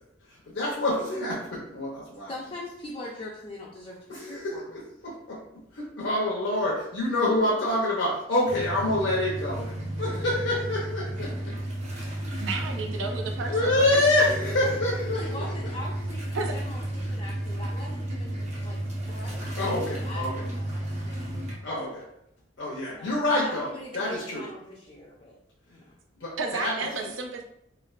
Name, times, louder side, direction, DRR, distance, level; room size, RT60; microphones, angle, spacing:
voice 1, 0.5-2.3 4.1-5.4 5.7-9.7 10.0-11.3 11.9-12.5 13.5-15.3 19.6-20.3 21.6-22.0 22.6-24.4 26.2-26.7, left 1 dB, 65° left, -5 dB, 0.6 m, -27 dB
voice 2, 2.3-4.7 15.1-18.8 19.1-21.6 22.9-25.4 25.7-25.9, left 1 dB, 30° left, -5 dB, 0.4 m, -42 dB
sound 1, 8.5-21.5, right 1 dB, 35° right, 0.6 m, -33 dB
voice 3, 12.4-14.0 16.3-16.5 26.4-27.4, right 3 dB, 85° right, 3 dB, 0.5 m, -32 dB
3.2 x 2.4 x 2.4 m, 0.77 s
head